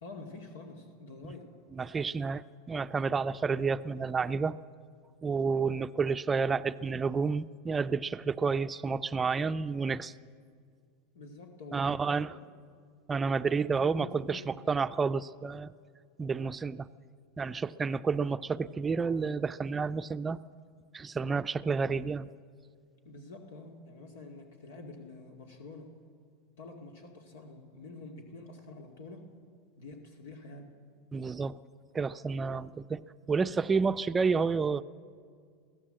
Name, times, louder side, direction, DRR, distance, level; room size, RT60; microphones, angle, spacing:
voice 1, 0.0-1.5 11.1-12.4 13.5-14.4 23.0-25.9 26.6-29.3 29.8-30.7, left 3 dB, 85° left, 3 dB, 2.2 m, -47 dB
voice 2, 1.7-4.6 5.2-10.1 11.7-12.3 13.1-15.7 16.2-16.9 17.4-20.4 20.9-22.3 31.1-31.6 31.9-33.0 33.3-34.8, right 5 dB, 15° right, 13 dB, 0.5 m, -30 dB
22.5 x 16.0 x 7.7 m, 2.1 s
supercardioid pair, 125°, 0 cm